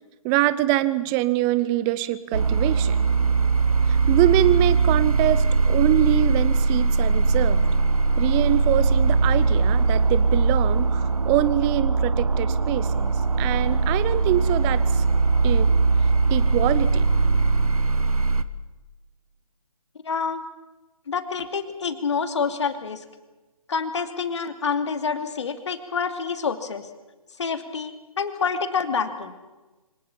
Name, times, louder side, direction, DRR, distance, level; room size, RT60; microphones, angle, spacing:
voice 1, 0.2-3.0 3.9-7.6 8.2-13.1 13.4-15.0 15.4-15.7 16.3-17.1, right 14 dB, 15° right, 15 dB, 0.8 m, -24 dB
sound 1, 2.3-18.4, right 4 dB, 75° right, 1.3 m, -20 dB
voice 2, 20.0-20.4 21.1-23.0 23.7-26.9 27.4-29.3, left 5 dB, 50° left, 8 dB, 2.6 m, -27 dB
25.0 x 19.0 x 7.3 m, 1.2 s
figure-of-eight pair, 140°, 19 cm